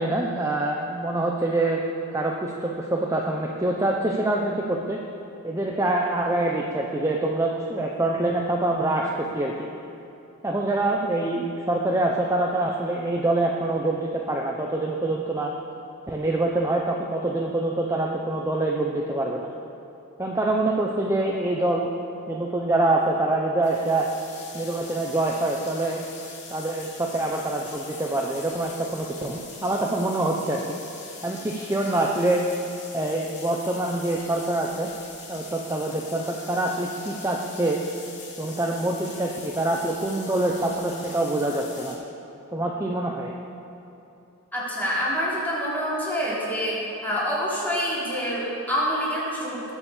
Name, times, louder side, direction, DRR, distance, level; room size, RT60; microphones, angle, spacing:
voice 1, 0.0-1.8 2.1-5.0 5.4-9.7 10.4-15.5 16.1-19.5 20.2-21.9 22.3-24.1 24.5-26.0 26.5-30.6 31.2-32.4 32.9-34.9 35.3-37.8 38.4-42.0 42.5-43.3, right 2 dB, 15° right, -1 dB, 0.8 m, -25 dB
sound 1, 23.6-41.9, left 4 dB, 50° left, 3.4 m, -43 dB
voice 2, 44.5-46.8 47.0-49.6, equal, 10° left, -8 dB, 4.1 m, -26 dB
20.5 x 7.3 x 7.3 m, 2.9 s
head